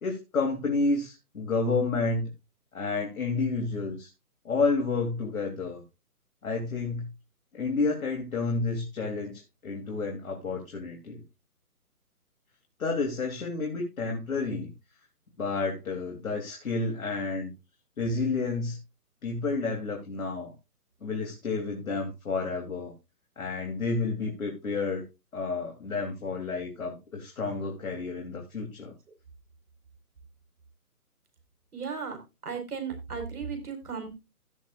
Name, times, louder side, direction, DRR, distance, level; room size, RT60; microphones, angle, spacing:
voice 1, 0.0-2.3 2.7-4.1 4.4-5.8 6.4-7.1 7.5-11.2 12.8-14.7 15.4-17.5 18.0-18.8 19.2-20.5 21.0-22.9 23.4-25.0 25.3-28.9, left 3 dB, 60° left, 1 dB, 3.1 m, -30 dB
voice 2, 31.7-32.2 32.4-34.1, right 6 dB, 70° right, 5 dB, 4.6 m, -35 dB
16.5 x 6.9 x 2.4 m, 0.26 s
hypercardioid pair, 155°, 46 cm